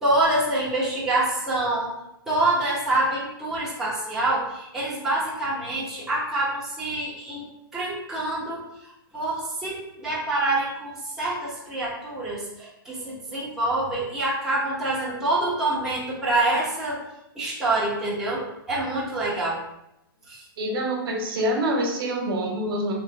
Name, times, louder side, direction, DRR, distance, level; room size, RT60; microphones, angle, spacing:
voice 1, 0.0-1.9 2.3-7.5 7.7-8.6 9.1-17.0 17.4-18.4 18.7-19.6 20.3-20.4, right 2 dB, 5° right, -9 dB, 0.9 m, -26 dB
voice 2, 20.6-22.9, right 1 dB, 70° right, 0 dB, 1.0 m, -26 dB
3.2 x 3.1 x 3.2 m, 0.85 s
hypercardioid pair, 150°, 13 cm